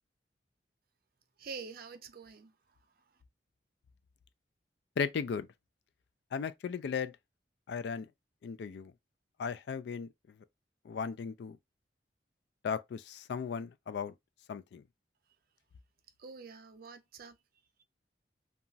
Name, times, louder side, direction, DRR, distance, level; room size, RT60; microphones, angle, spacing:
voice 1, 1.4-2.5 16.2-17.3, right 5 dB, 55° right, 0.5 m, -46 dB
voice 2, 5.0-5.5 6.3-7.1 7.7-8.1 8.4-8.9 9.4-10.1 10.8-11.6 12.6-14.1 14.5-14.8, left 6 dB, 65° left, 0.3 m, -36 dB
2.9 x 2.3 x 2.6 m
head